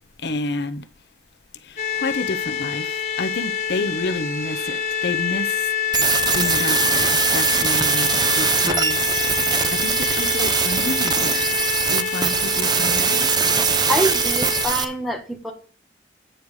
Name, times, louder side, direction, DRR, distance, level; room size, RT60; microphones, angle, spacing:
voice 1, 0.2-0.9 1.5-6.1 6.3-11.6 11.9-13.3, left 2 dB, 65° left, 0.8 m, -30 dB
sound 1, 1.8-14.7, left 8 dB, 40° left, 2.1 m, -26 dB
sound 2, 5.9-14.8, right 6 dB, 25° right, 0.6 m, -21 dB
voice 2, 13.9-15.5, right 1 dB, ahead, 1.7 m, -25 dB
9.0 x 4.8 x 6.5 m
head